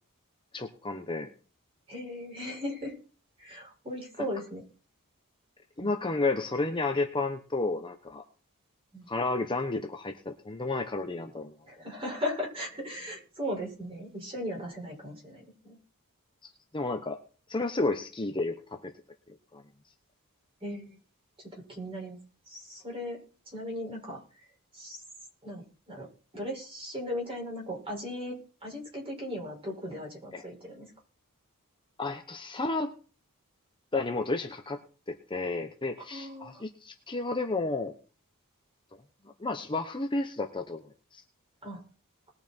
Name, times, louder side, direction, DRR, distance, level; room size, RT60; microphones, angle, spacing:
voice 1, 0.5-1.3 5.8-8.2 9.1-11.5 16.7-17.2 17.5-18.9 19.5-19.6 30.3-30.4 32.0-32.9 33.9-34.8 35.1-37.9 39.4-41.2, left 3 dB, 20° left, 5 dB, 1.0 m, -31 dB
voice 2, 1.9-2.9 3.4-4.6 5.8-5.9 8.9-9.1 11.7-15.8 20.6-21.0 21.5-22.2 22.5-23.2 23.5-24.2 24.7-25.0 25.4-26.1 26.3-30.9 36.1-36.6 41.6-41.8, left 1 dB, 25° right, -1 dB, 5.8 m, -37 dB
20.5 x 6.8 x 4.5 m, 0.38 s
head